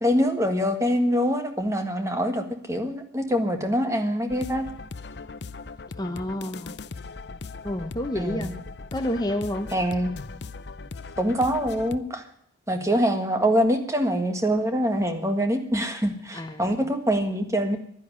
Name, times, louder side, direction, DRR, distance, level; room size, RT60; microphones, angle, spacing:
voice 1, 0.0-4.7 8.1-8.5 9.7-10.1 11.2-12.2 12.7-17.8, equal, 15° right, 6 dB, 1.6 m, -24 dB
sound 1, 4.3-12.0, left 4 dB, 65° left, 0.6 m, -39 dB
voice 2, 6.0-6.7 7.6-8.5 8.9-9.7 16.3-16.6, left 1 dB, 20° left, 6 dB, 0.8 m, -29 dB
11.5 x 10.5 x 9.7 m, 0.68 s
head